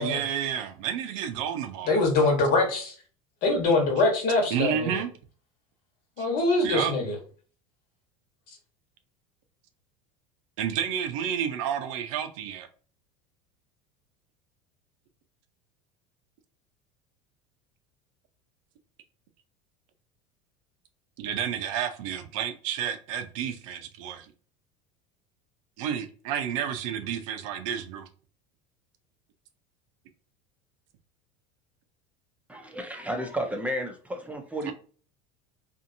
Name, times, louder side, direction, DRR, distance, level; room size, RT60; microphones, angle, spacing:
voice 1, 0.0-1.9 4.5-5.1 6.2-6.3 6.6-6.9 10.6-12.7 21.2-24.3 25.8-28.1 34.6-34.7, right 9 dB, 70° right, 0.5 m, -30 dB
voice 2, 1.9-2.9 3.4-5.0 6.2-7.1, left 2 dB, 60° left, 1.2 m, -23 dB
voice 3, 32.5-34.7, equal, 10° right, 0.5 m, -32 dB
2.7 x 2.5 x 2.6 m
supercardioid pair, 95°, 17 cm